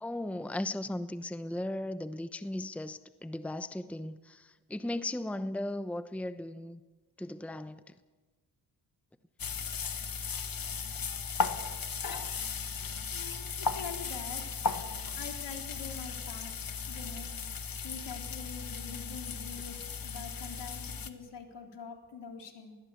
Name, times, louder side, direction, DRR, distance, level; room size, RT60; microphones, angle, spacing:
voice 1, 0.0-6.8 7.2-7.8, left 1 dB, 5° left, 11 dB, 0.9 m, -37 dB
sound 1, 9.4-21.1, left 5 dB, 50° left, 1.7 m, -36 dB
voice 2, 13.1-14.7 15.1-16.5 16.9-17.3 17.8-22.8, left 6 dB, 70° left, 3 dB, 3.9 m, -45 dB
20.5 x 19.0 x 8.4 m, 1.3 s
cardioid pair, 65°, 43 cm